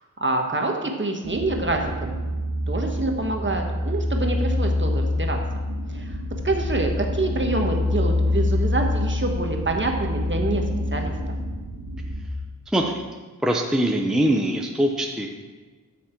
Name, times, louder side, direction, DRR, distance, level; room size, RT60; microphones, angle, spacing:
voice 1, 0.2-2.2 2.7-5.4 5.9-6.2 6.4-10.6 10.9-11.1, right 2 dB, 35° right, 2 dB, 1.3 m, -26 dB
sound 1, 1.2-12.2, left 1 dB, 70° right, 1.4 m, -26 dB
voice 2, 12.7-13.0 13.4-15.3, right 1 dB, ahead, 1 dB, 0.7 m, -22 dB
13.0 x 5.9 x 4.5 m, 1.3 s
wide cardioid pair, 100°, 34 cm